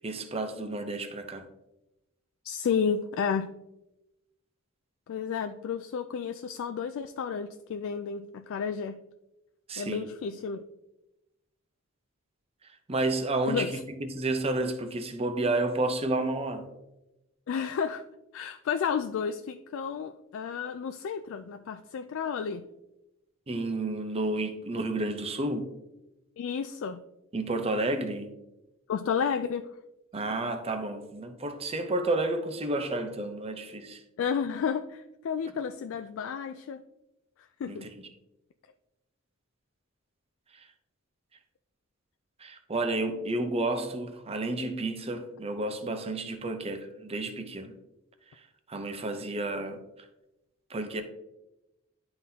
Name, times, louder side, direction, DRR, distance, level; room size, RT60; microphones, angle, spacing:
voice 1, 0.0-1.4 9.7-10.0 12.9-16.7 23.5-25.7 27.3-28.3 30.1-34.0 37.7-38.0 40.5-40.6 42.4-47.7 48.7-49.8 50.7-51.0, right 2 dB, 30° right, 0.7 m, -31 dB
voice 2, 2.4-3.5 5.1-9.0 9.8-10.6 13.5-13.7 17.5-18.0 18.3-22.6 26.4-27.0 28.9-29.7 34.2-36.8 37.6-37.9, left 6 dB, 65° left, 0.3 m, -31 dB
11.0 x 3.9 x 2.8 m
head